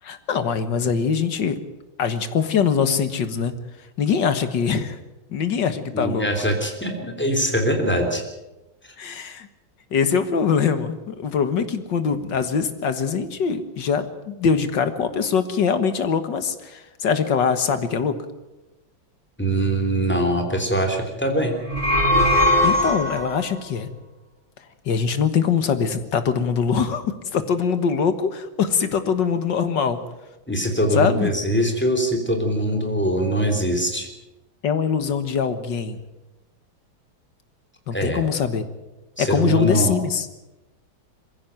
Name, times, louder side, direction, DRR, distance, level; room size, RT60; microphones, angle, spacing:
voice 1, 0.0-1.6 2.0-3.5 4.0-5.0 5.3-6.3 9.0-9.5 9.9-18.1 22.6-23.9 24.9-30.0 31.0-31.3 34.6-36.0 37.9-38.6 39.2-40.3, left 6 dB, 65° left, 10 dB, 2.1 m, -23 dB
voice 2, 5.9-8.2 19.4-21.5 30.5-34.1 37.9-38.2 39.2-39.9, right 1 dB, 5° left, 3 dB, 3.2 m, -22 dB
sound 1, 21.6-23.5, left 1 dB, 25° right, 3.4 m, -19 dB
22.0 x 15.5 x 9.2 m, 1.0 s
omnidirectional pair, 2.2 m